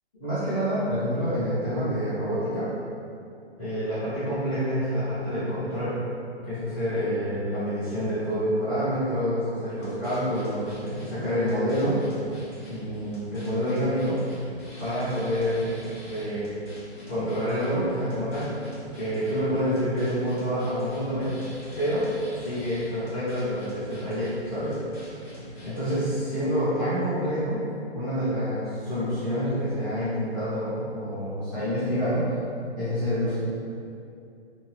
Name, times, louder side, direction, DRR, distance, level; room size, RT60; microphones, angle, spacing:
voice 1, 0.2-2.7 3.6-5.9 6.4-12.0 12.7-14.2 14.8-16.5 17.1-18.5 18.9-21.4 21.8-22.1 22.4-24.8 25.6-27.6 27.9-32.3 32.8-33.4, equal, 30° left, -15 dB, 0.9 m, -27 dB
sound 1, 9.7-26.1, equal, 50° left, 1.2 m, -45 dB
2.7 x 2.1 x 2.9 m, 2.5 s
figure-of-eight pair, 135°, 33 cm